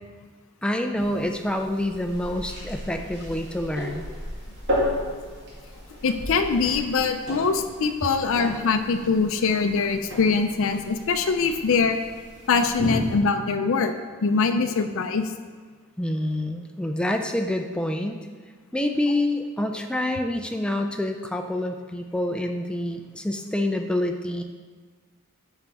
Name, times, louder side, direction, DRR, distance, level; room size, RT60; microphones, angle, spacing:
voice 1, 0.6-4.1 16.0-18.3 18.7-24.4, left 1 dB, 5° left, 4 dB, 0.4 m, -27 dB
sound 1, 0.9-13.2, left 1 dB, 50° right, 2.3 m, -34 dB
voice 2, 6.0-12.0 12.5-13.9 14.2-15.2, left 4 dB, 60° left, 6 dB, 0.5 m, -23 dB
8.9 x 5.7 x 3.6 m, 1.5 s
head